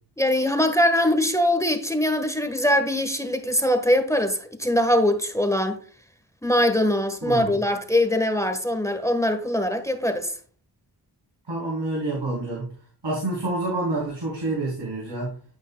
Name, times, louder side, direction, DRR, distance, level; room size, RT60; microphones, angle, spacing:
voice 1, 0.2-5.8 6.4-10.3, left 1 dB, 5° left, 1.4 m, -22 dB
voice 2, 7.2-7.6 11.5-12.7 13.0-15.3, right 2 dB, 80° right, 3.8 m, -28 dB
13.0 x 5.6 x 2.3 m
cardioid pair, 40°, 43 cm